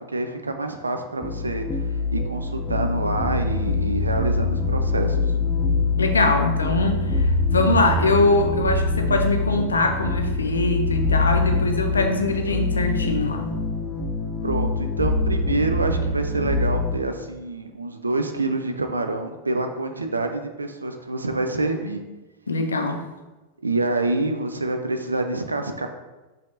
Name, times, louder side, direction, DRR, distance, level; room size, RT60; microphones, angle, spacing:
voice 1, 0.1-1.9 2.1-5.2 14.4-22.0 23.6-25.9, right 2 dB, 80° right, 6 dB, 0.4 m, -27 dB
sound 1, 1.2-17.0, left 3 dB, 15° left, 0.5 m, -24 dB
voice 2, 6.0-13.5 22.5-23.0, left 2 dB, 75° left, 4 dB, 0.5 m, -22 dB
5.1 x 2.7 x 2.5 m, 1.1 s
figure-of-eight pair, 90°, 0 cm